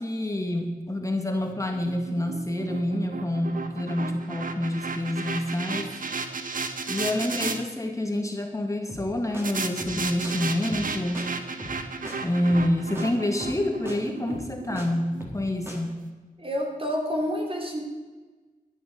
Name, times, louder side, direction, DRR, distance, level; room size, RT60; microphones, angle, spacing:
voice 1, 0.0-5.9 6.9-11.3 12.2-16.0, left 1 dB, 20° left, 3 dB, 2.0 m, -27 dB
sound 1, 1.4-7.6 9.4-15.7, right 4 dB, 65° right, 1.2 m, -34 dB
sound 2, 8.9-9.1 9.3-9.4 9.8-10.0 10.2-10.3 10.7-10.9 11.1-11.2 11.6-11.8 12.0-12.2 12.5-12.7 12.9-13.1 13.4-13.6 13.8-14.0 14.3-14.9 15.2-15.4 15.7-15.8, equal, 15° right, 4.2 m, -39 dB
voice 2, 16.4-17.8, equal, 40° right, 0 dB, 3.7 m, -28 dB
13.0 x 10.5 x 6.9 m, 1.3 s
cardioid pair, 60°, 15 cm